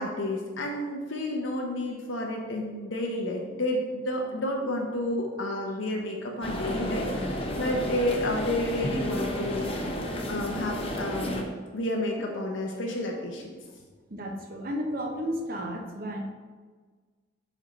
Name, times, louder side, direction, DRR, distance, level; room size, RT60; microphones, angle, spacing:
voice 1, 0.0-10.0 10.3-13.6, left 1 dB, 80° left, 0 dB, 0.7 m, -31 dB
sound 1, 6.4-11.4, equal, 30° left, 0.7 m, -31 dB
voice 2, 14.1-16.2, equal, 50° right, 3 dB, 0.8 m, -33 dB
5.2 x 5.2 x 4.1 m, 1.5 s
head